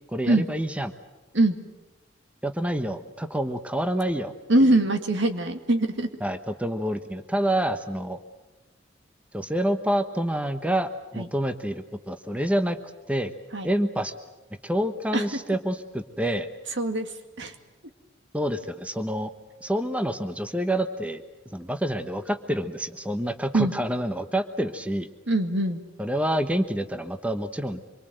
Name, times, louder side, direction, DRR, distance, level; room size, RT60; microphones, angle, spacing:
voice 1, 0.1-0.9 2.4-4.3 4.6-4.8 6.2-8.2 9.3-12.8 13.1-13.3 13.6-14.1 14.6-16.5 18.3-19.3 19.6-25.1 26.0-27.9, right 1 dB, 5° right, 8 dB, 1.1 m, -27 dB
voice 2, 4.5-6.1 11.2-11.3 13.5-13.7 15.1-15.2 16.8-17.1 17.4-17.5 23.5-23.7 25.3-25.8, right 1 dB, 70° right, 6 dB, 2.2 m, -22 dB
26.0 x 23.5 x 7.8 m, 1.1 s
head